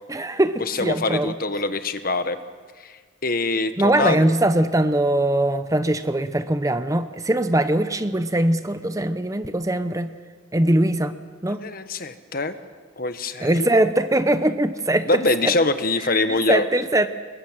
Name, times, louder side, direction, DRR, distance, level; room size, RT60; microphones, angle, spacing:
voice 1, 0.1-1.3 3.8-10.1 10.5-11.1 11.4-11.6 13.4-15.5 16.1-17.1, right 1 dB, 15° right, 11 dB, 0.8 m, -21 dB
voice 2, 0.7-2.4 2.8-4.3 11.5-12.5 13.0-13.7 15.1-16.7, left 2 dB, 50° left, 10 dB, 1.2 m, -24 dB
26.0 x 21.5 x 7.4 m, 1.5 s
head